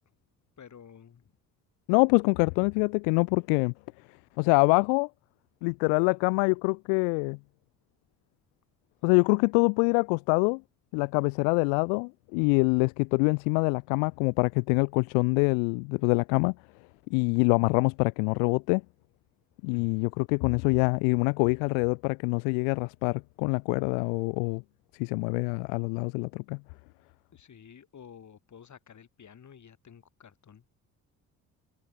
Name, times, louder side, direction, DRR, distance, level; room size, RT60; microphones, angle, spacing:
voice 1, 0.6-1.3 19.7-20.1 27.3-30.6, left 8 dB, 40° left, 7.5 m, -51 dB
voice 2, 1.9-3.7 4.4-5.1 5.6-7.4 9.0-10.6 10.9-16.6 17.1-18.8 19.6-24.6 25.0-26.6, left 40 dB or more, 60° left, 0.5 m, -25 dB
figure-of-eight pair, 50°, 42 cm